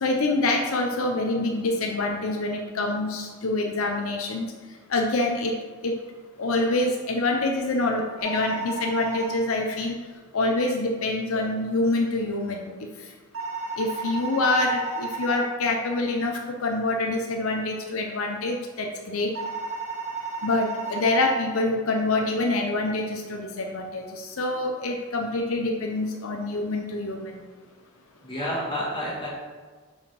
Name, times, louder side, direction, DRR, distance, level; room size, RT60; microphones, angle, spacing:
voice 1, 0.0-4.5 4.9-5.5 5.8-5.9 6.4-10.0 10.3-12.7 13.8-19.3 20.4-27.4, left 2 dB, 75° left, 2 dB, 0.6 m, -26 dB
sound 1, 8.2-9.3 13.3-15.3 19.3-21.3, right 4 dB, 70° right, 1.3 m, -33 dB
voice 2, 28.2-29.3, equal, 25° left, -6 dB, 1.9 m, -30 dB
5.0 x 5.0 x 5.2 m, 1.5 s
head